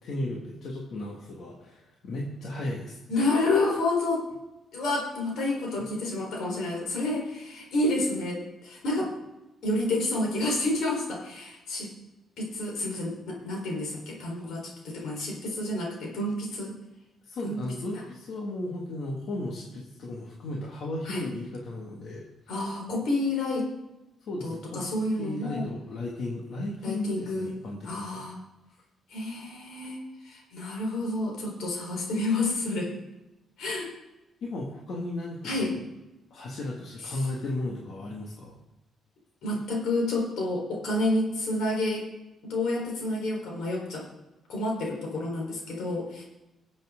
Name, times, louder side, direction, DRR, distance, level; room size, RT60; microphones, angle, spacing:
voice 1, 0.0-3.3 17.2-22.3 24.3-24.8 25.2-28.2 34.4-35.8 36.3-38.6, left 1 dB, 65° left, -2 dB, 2.0 m, -35 dB
voice 2, 3.1-4.2 4.7-9.1 9.6-11.9 12.4-16.7 17.4-17.6 21.0-21.2 22.5-23.7 24.4-25.7 26.8-27.5 27.8-28.4 29.1-32.9 33.6-33.9 35.4-35.7 39.4-42.1 42.4-44.1 44.5-46.2, left 2 dB, 80° left, 0 dB, 4.1 m, -29 dB
20.5 x 7.6 x 3.8 m, 0.99 s
cardioid pair, 120°, 0 cm